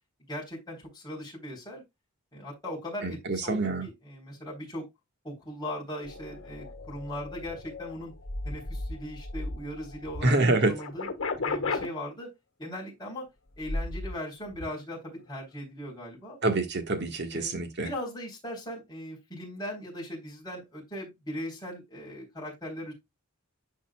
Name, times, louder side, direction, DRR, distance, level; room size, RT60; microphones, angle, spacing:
voice 1, 0.3-1.8 2.3-4.8 5.2-8.1 8.4-10.3 10.6-11.1 11.4-12.3 12.6-13.3 13.6-16.4 17.3-22.9, left 1 dB, 20° left, 3.7 m, -39 dB
voice 2, 3.0-3.9 10.2-10.7 16.4-17.9, right 2 dB, 55° right, 1.5 m, -26 dB
sound 1, 6.0-10.3 10.6-11.9 13.5-14.2 14.5-14.7, left 3 dB, 65° left, 1.4 m, -35 dB
10.5 x 5.3 x 2.3 m
head